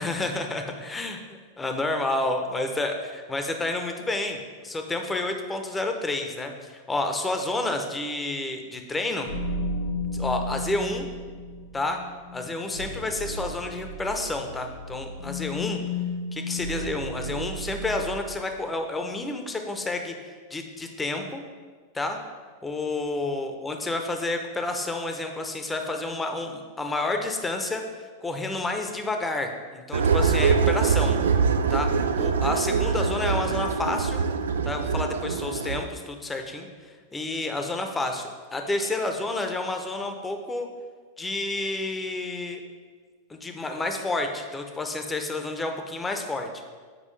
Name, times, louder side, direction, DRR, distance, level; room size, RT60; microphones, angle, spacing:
voice 1, 0.0-9.3 10.1-11.1 11.7-12.0 12.3-15.8 16.3-21.4 21.9-22.2 22.6-31.2 31.7-31.9 32.2-34.2 34.7-38.2 38.5-40.7 41.2-42.6 43.3-46.5, left 2 dB, 15° left, 5 dB, 0.8 m, -30 dB
sound 1, 9.3-18.4, left 1 dB, 90° left, 0.8 m, -34 dB
sound 2, 29.9-35.8, right 5 dB, 80° right, 0.4 m, -24 dB
7.6 x 4.7 x 3.3 m, 1.5 s
hypercardioid pair, 100°, 0 cm